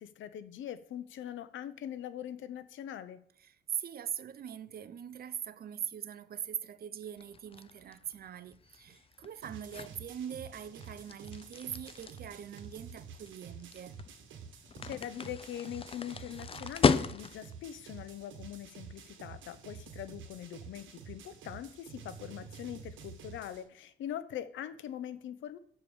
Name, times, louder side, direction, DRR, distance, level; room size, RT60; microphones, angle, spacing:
voice 1, 0.0-3.2 14.8-25.6, left 10 dB, 75° left, 0.8 m, -42 dB
voice 2, 3.4-14.0, right 9 dB, 50° right, 0.6 m, -42 dB
sound 1, 7.2-17.6, left 5 dB, 30° left, 0.5 m, -36 dB
sound 2, 9.4-23.6, right 6 dB, 80° right, 1.5 m, -49 dB
6.9 x 4.7 x 7.0 m
cardioid pair, 90°, 20 cm